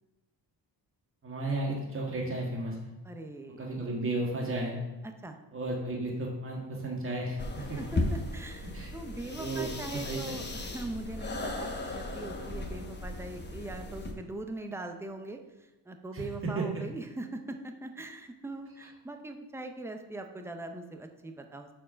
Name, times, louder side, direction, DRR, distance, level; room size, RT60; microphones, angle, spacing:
voice 1, 1.2-2.9 3.6-4.8 5.5-7.8 8.7-8.9 9.4-10.4 16.1-16.2 16.5-16.6, right 2 dB, 30° right, -2 dB, 1.6 m, -34 dB
voice 2, 3.0-3.6 5.0-5.4 7.6-21.7, right 2 dB, 5° right, 5 dB, 0.5 m, -41 dB
sound 1, 7.4-14.1, left 2 dB, 25° left, 1.0 m, -36 dB
6.4 x 4.7 x 6.2 m, 1.1 s
wide cardioid pair, 140°, 43 cm